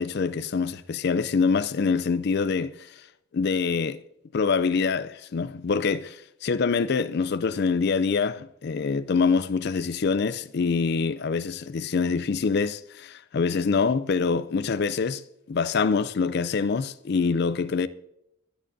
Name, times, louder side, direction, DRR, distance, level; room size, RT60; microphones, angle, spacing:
voice 1, 0.0-2.7 3.3-4.0 4.3-15.2 15.5-17.9, left 5 dB, 50° left, 0.4 m, -25 dB
22.5 x 10.0 x 2.7 m
head